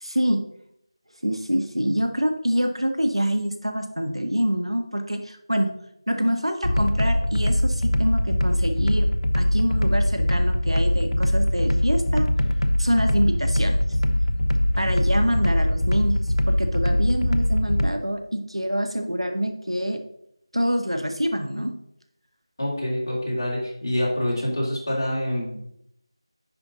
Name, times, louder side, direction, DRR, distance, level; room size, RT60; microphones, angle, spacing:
voice 1, 0.0-0.4 1.2-5.7 6.1-9.1 9.3-12.3 12.8-13.8 14.8-16.2 16.5-20.0 20.5-21.7, equal, 90° right, 6 dB, 1.2 m, -25 dB
sound 1, 6.6-17.9, left 1 dB, 80° left, 0.7 m, -22 dB
voice 2, 22.6-25.7, left 1 dB, 35° left, -5 dB, 2.8 m, -26 dB
10.0 x 4.5 x 3.8 m, 0.74 s
figure-of-eight pair, 170°, 3 cm